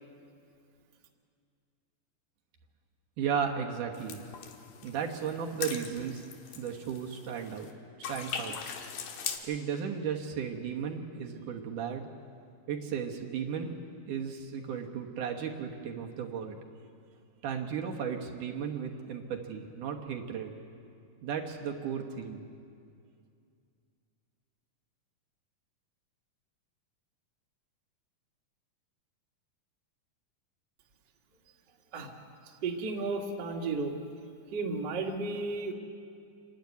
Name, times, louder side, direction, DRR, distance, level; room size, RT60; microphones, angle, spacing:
voice 1, 3.2-4.2 4.8-6.2 6.6-7.7 8.1-8.6 9.4-12.1 12.7-13.7 14.1-16.6 17.4-20.5 21.2-22.5, right 7 dB, 70° right, 1 dB, 2.8 m, -35 dB
sound 1, 3.9-7.7 8.0-9.4, left 7 dB, 85° left, 3.0 m, -41 dB
voice 2, 32.6-33.9 34.5-35.7, right 3 dB, 40° right, 0 dB, 1.9 m, -33 dB
27.0 x 12.0 x 9.4 m, 2.4 s
omnidirectional pair, 3.8 m